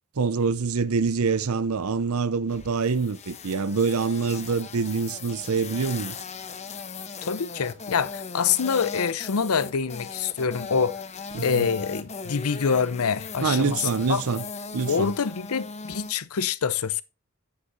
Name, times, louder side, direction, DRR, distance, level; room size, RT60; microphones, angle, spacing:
voice 1, 0.2-6.2 11.3-11.7 13.4-14.4 14.7-15.2, right 5 dB, 80° right, 0.6 m, -25 dB
sound 1, 2.5-16.1, left 5 dB, 30° left, 0.9 m, -38 dB
voice 2, 7.2-11.0 11.4-14.2 14.9-17.0, left 6 dB, 80° left, 0.7 m, -26 dB
9.9 x 8.2 x 2.7 m
head